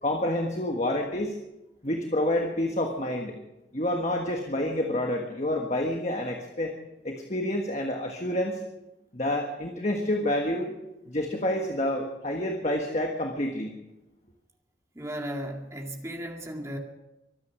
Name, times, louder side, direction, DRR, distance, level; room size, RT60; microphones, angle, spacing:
voice 1, 0.0-1.3 1.8-3.4 3.7-6.7 7.0-8.6 9.1-10.8 11.1-13.7, left 1 dB, 35° left, 2 dB, 1.5 m, -28 dB
voice 2, 15.0-16.8, equal, 15° right, 2 dB, 2.0 m, -35 dB
24.0 x 9.6 x 6.0 m, 0.95 s
head